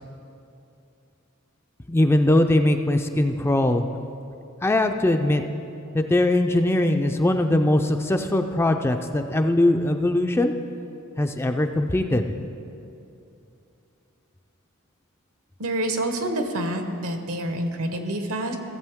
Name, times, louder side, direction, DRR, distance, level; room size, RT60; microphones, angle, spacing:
voice 1, 1.9-3.8 4.6-5.4 5.9-10.5 11.2-12.3, left 1 dB, 10° left, 6 dB, 0.3 m, -21 dB
voice 2, 15.6-18.6, right 1 dB, 75° right, 6 dB, 1.0 m, -27 dB
16.5 x 7.5 x 3.6 m, 2.7 s
head